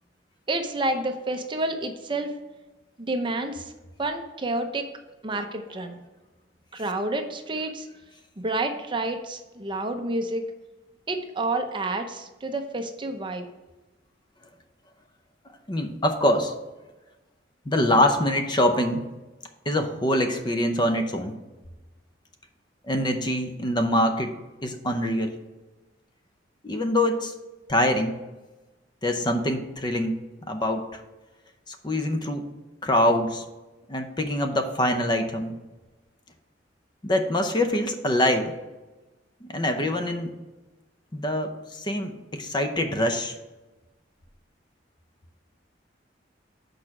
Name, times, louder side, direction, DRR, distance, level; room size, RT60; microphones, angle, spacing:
voice 1, 0.5-2.3 3.0-3.7 4.0-4.9 5.2-6.0 6.7-7.9 8.4-10.4 11.1-13.5, right 2 dB, 25° right, 6 dB, 0.7 m, -29 dB
voice 2, 15.7-16.5 17.7-19.1 19.7-21.3 22.9-24.3 24.6-25.3 26.6-27.3 27.7-28.2 29.0-30.1 30.5-31.0 31.7-32.5 32.8-33.4 33.9-35.6 37.0-38.5 39.4-40.3 41.1-43.4, left 1 dB, 25° left, 6 dB, 0.7 m, -24 dB
6.6 x 4.9 x 5.9 m, 1.1 s
head